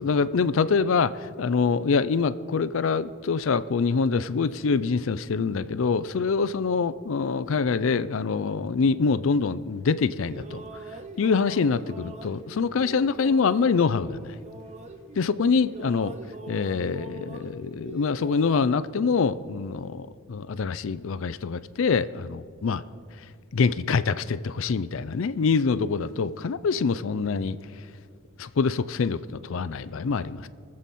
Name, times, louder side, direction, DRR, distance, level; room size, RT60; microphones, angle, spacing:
voice 1, 0.0-10.6 11.2-14.4 15.2-16.1 16.5-22.8 23.5-27.6 28.4-30.5, left 5 dB, 65° left, 16 dB, 0.4 m, -25 dB
sound 1, 10.2-15.4 15.7-18.6, right 2 dB, 30° right, 0.7 m, -43 dB
22.5 x 7.6 x 4.2 m, 2.1 s
head